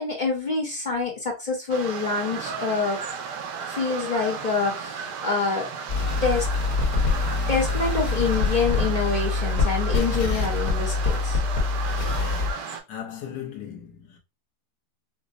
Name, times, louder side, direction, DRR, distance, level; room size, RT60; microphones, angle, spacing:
voice 1, 0.0-3.0 3.7-5.7 6.2-6.5 7.5-11.4, left 4 dB, 40° left, 0.7 m, -26 dB
sound 1, 1.7-12.8, right 6 dB, 80° right, 1.3 m, -34 dB
sound 2, 5.9-12.5, left 4 dB, 60° left, 1.6 m, -25 dB
voice 2, 12.7-14.2, left 9 dB, 80° left, 1.4 m, -37 dB
5.0 x 2.1 x 2.5 m
omnidirectional pair, 1.8 m